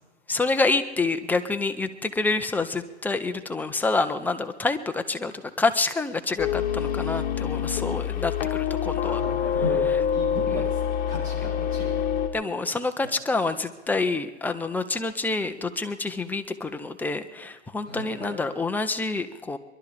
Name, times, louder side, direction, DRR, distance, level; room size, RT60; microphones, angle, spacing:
voice 1, 0.3-9.2 12.3-19.6, left 3 dB, 5° left, 7 dB, 0.5 m, -27 dB
sound 1, 6.4-12.3, left 8 dB, 25° left, 2.0 m, -26 dB
voice 2, 9.0-12.0 13.0-13.1 17.8-18.4, left 1 dB, 20° right, -1 dB, 6.1 m, -35 dB
22.0 x 12.0 x 5.0 m, 1.2 s
hypercardioid pair, 125°, 35 cm